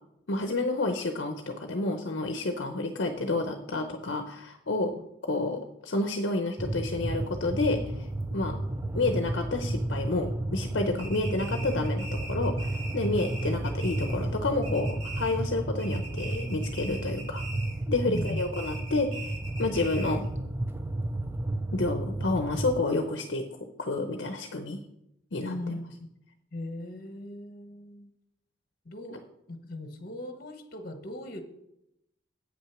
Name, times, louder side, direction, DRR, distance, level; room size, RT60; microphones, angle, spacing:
voice 1, 0.3-4.9 5.2-8.6 8.9-17.4 17.9-19.3 19.6-20.2 21.7-23.4 23.8-24.8 25.3-25.5 29.1-29.2, left 2 dB, 65° left, 5 dB, 0.7 m, -30 dB
sound 1, 6.6-22.8, right 1 dB, 10° right, 0.4 m, -32 dB
sound 2, 11.0-14.4 14.6-15.5 15.8-17.8 18.1-20.3, right 2 dB, 85° right, 2.2 m, -42 dB
voice 2, 18.1-18.4 25.4-26.1 26.5-28.1 28.8-29.2 29.5-31.4, left 2 dB, 45° left, 7 dB, 1.1 m, -39 dB
8.3 x 6.1 x 6.0 m, 0.80 s
head